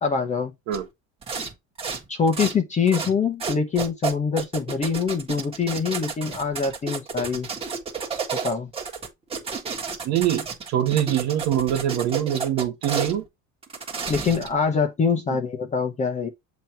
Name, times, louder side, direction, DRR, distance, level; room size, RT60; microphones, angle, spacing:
voice 1, 0.0-0.5 2.1-7.5 8.3-8.7 14.1-16.3, left 5 dB, 25° left, 0.9 m, -24 dB
sound 1, 0.7-0.8 1.2-1.5 1.8-2.5 2.9-3.1 3.4-13.1 13.6-14.6, right 5 dB, 20° right, 1.6 m, -31 dB
voice 2, 10.0-13.2, right 10 dB, 60° right, 1.4 m, -24 dB
7.5 x 3.0 x 4.4 m
cardioid pair, 160°, 31 cm